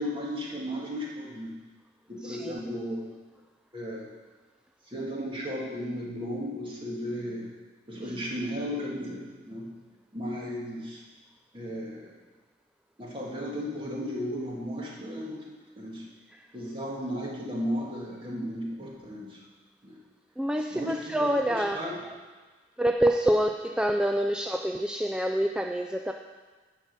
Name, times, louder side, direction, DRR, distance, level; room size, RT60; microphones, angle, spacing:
voice 1, 0.0-1.5 2.1-3.1 3.7-4.1 4.9-7.5 7.9-9.7 10.1-11.0 11.5-12.1 13.0-15.5 15.8-16.1 16.5-19.4 19.8-20.0 20.7-21.9, equal, 30° right, -4 dB, 2.2 m, -35 dB
voice 2, 2.2-2.6 16.3-16.4 20.4-21.8 22.8-26.1, right 1 dB, 5° right, 4 dB, 0.3 m, -27 dB
11.0 x 5.3 x 8.1 m, 1.4 s
head